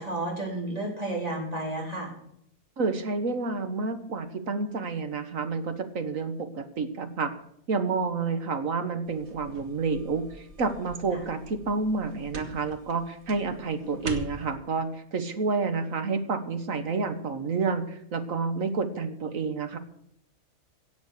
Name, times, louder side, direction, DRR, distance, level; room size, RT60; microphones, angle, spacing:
voice 1, 0.0-2.1 11.1-11.2, right 2 dB, 25° right, -1 dB, 4.1 m, -32 dB
voice 2, 2.8-7.3 7.7-19.8, right 4 dB, 70° right, 9 dB, 1.8 m, -29 dB
sound 1, 9.1-14.6, equal, 50° right, 1.9 m, -42 dB
17.0 x 7.2 x 6.6 m, 0.72 s
omnidirectional pair, 1.5 m